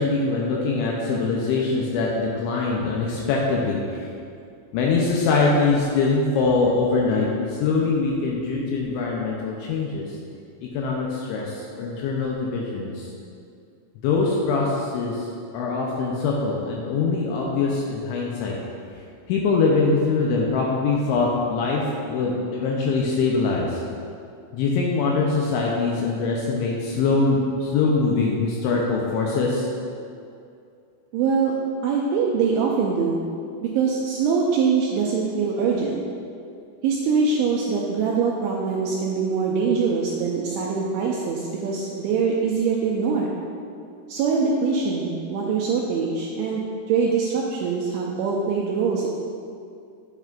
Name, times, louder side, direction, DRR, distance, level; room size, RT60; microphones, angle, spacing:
voice 1, 0.0-4.0 4.7-10.1 10.6-13.1 14.0-15.3 15.5-18.5 19.3-23.8 24.5-29.7, left 4 dB, 80° left, -2 dB, 2.8 m, -23 dB
voice 2, 31.1-31.5 31.8-33.2 33.6-36.0 36.8-43.3 44.1-49.1, right 5 dB, 90° right, -2 dB, 2.6 m, -23 dB
9.0 x 8.1 x 2.5 m, 2.4 s
omnidirectional pair, 5.9 m